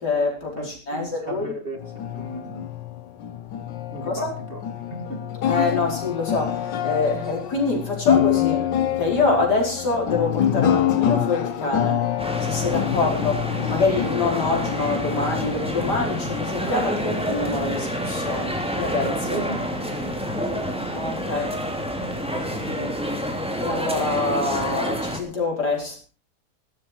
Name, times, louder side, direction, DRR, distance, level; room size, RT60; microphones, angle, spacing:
voice 1, 0.0-1.5 4.0-4.3 5.4-8.7 9.0-12.1 12.4-13.3 13.7-19.4 20.9-21.6 23.6-26.0, left 3 dB, 70° left, 5.3 m, -25 dB
voice 2, 0.6-2.7 3.9-4.6 4.9-5.3 13.0-13.1 19.3-20.3 22.3-23.0, right 2 dB, 30° right, 2.4 m, -35 dB
sound 1, 1.8-16.5, left 10 dB, 90° left, 1.7 m, -26 dB
sound 2, 12.2-25.2, equal, 5° right, 2.8 m, -28 dB
16.0 x 13.0 x 4.6 m
omnidirectional pair, 1.9 m